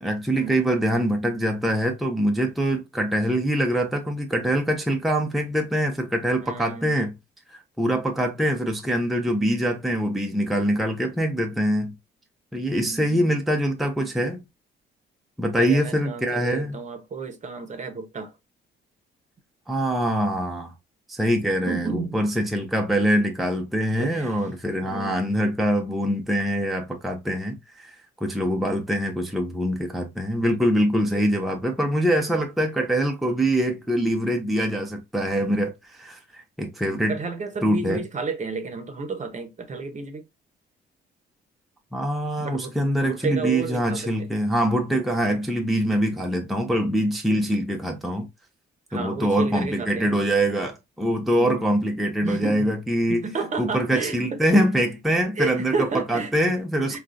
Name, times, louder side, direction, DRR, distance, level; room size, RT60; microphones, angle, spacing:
voice 1, 0.0-7.1 7.5-11.9 12.5-14.4 15.4-16.8 19.7-20.7 21.1-28.0 28.2-37.2 37.6-38.0 41.9-48.3 48.9-53.3 53.6-57.0, equal, ahead, 0.5 m, -24 dB
voice 2, 6.4-7.0 9.3-9.5 12.7-13.4 15.6-18.3 21.7-22.2 24.0-24.4 24.8-25.3 31.0-31.3 37.1-40.2 42.4-42.7 43.0-44.0 47.3-47.6 48.9-50.1 51.3-51.8 52.2-52.7 53.1-54.7 55.4-56.3 56.9-57.0, right 4 dB, 35° right, 0.8 m, -32 dB
3.6 x 2.3 x 2.5 m
cardioid pair, 90°, 20 cm